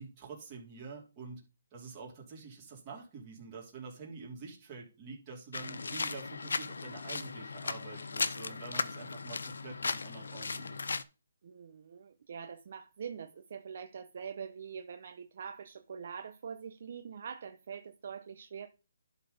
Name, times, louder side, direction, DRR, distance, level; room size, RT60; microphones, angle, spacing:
voice 1, 0.0-1.4 1.7-10.8, right 4 dB, 20° right, 3.2 m, -47 dB
sound 1, 5.5-11.0, left 4 dB, 85° left, 0.8 m, -37 dB
voice 2, 11.4-18.7, right 7 dB, 45° right, 0.7 m, -44 dB
11.5 x 4.1 x 5.3 m
hypercardioid pair, 170°, 0 cm